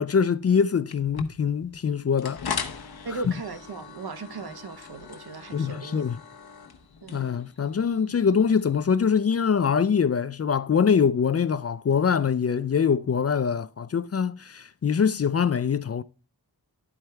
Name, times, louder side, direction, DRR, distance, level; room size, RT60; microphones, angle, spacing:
voice 1, 0.0-2.4 3.2-3.3 5.5-6.2 7.1-16.0, left 6 dB, 40° left, 0.4 m, -23 dB
sound 1, 0.9-8.8, left 6 dB, 70° left, 0.9 m, -38 dB
voice 2, 3.0-6.0 7.0-7.3, right 4 dB, 70° right, 0.9 m, -37 dB
11.0 x 4.4 x 3.4 m
wide cardioid pair, 75°, 39 cm